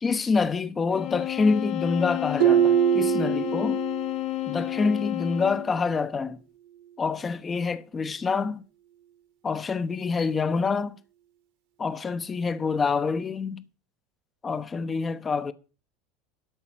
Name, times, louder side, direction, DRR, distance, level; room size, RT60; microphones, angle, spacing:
voice 1, 0.0-3.8 4.5-6.4 7.0-8.6 9.4-11.0 11.8-13.6 14.4-15.5, left 4 dB, 25° left, 0.8 m, -26 dB
sound 1, 0.9-5.8, left 17 dB, 55° left, 1.2 m, -31 dB
Harp, 2.4-4.2 4.5-4.9 5.5-5.6, right 11 dB, 75° right, 2.2 m, -23 dB
12.0 x 4.0 x 7.4 m
hypercardioid pair, 85°, 0 cm